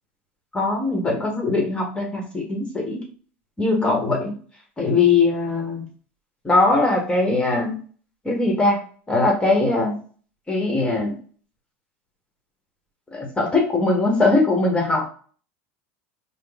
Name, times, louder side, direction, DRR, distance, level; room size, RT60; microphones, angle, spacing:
voice 1, 0.5-3.0 3.6-4.4 4.8-5.8 6.4-7.8 8.2-8.8 9.1-10.0 10.5-11.2 13.1-15.1, left 3 dB, 15° left, 0 dB, 1.2 m, -21 dB
3.7 x 2.1 x 3.5 m, 0.42 s
supercardioid pair, 110°, 7 cm